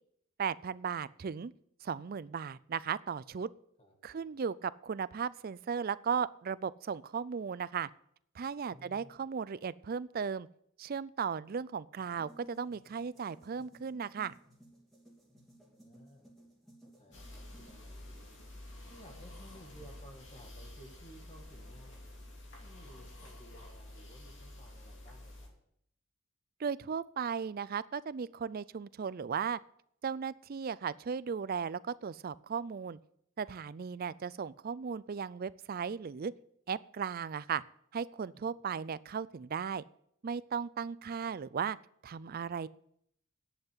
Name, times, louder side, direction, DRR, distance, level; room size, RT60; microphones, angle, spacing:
voice 1, 0.4-1.5 1.8-3.5 4.0-7.9 8.3-10.5 10.8-14.4 26.6-29.6 30.0-33.0 33.4-36.3 36.7-37.6 37.9-39.8 40.2-41.8 42.0-42.7, right 6 dB, 45° right, 18 dB, 0.4 m, -36 dB
voice 2, 3.8-4.3 8.7-9.3 15.7-16.3 17.0-18.4 18.9-22.0 22.6-25.5 38.3-38.6, equal, 30° left, 2 dB, 2.1 m, -57 dB
sound 1, 12.0-17.7, right 1 dB, ahead, 3.1 m, -59 dB
sound 2, 17.1-25.5, left 1 dB, 60° left, 2.7 m, -50 dB
10.5 x 8.1 x 7.9 m, 0.71 s
head